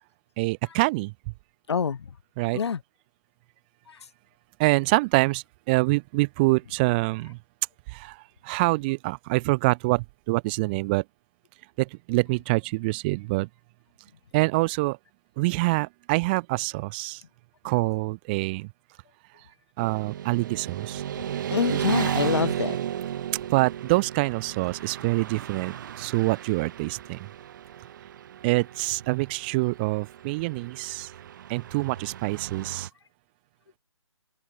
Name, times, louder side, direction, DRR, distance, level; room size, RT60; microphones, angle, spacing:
voice 1, 0.4-1.1 2.4-2.6 4.6-7.4 7.9-8.1 8.4-11.0 11.8-13.5 14.3-15.0 15.4-17.2 17.6-18.7 19.8-21.0 23.5-27.2 28.4-31.1 31.5-32.9, right 24 dB, 20° right, 0.8 m, -25 dB
voice 2, 1.7-2.1 2.5-2.8 3.9-4.0 21.5-22.8, left 6 dB, 55° left, 3.1 m, -26 dB
Motorcycle / Traffic noise roadway noise, 19.8-32.9, right 10 dB, 40° right, 2.1 m, -34 dB
open air
figure-of-eight pair, 150°, 16 cm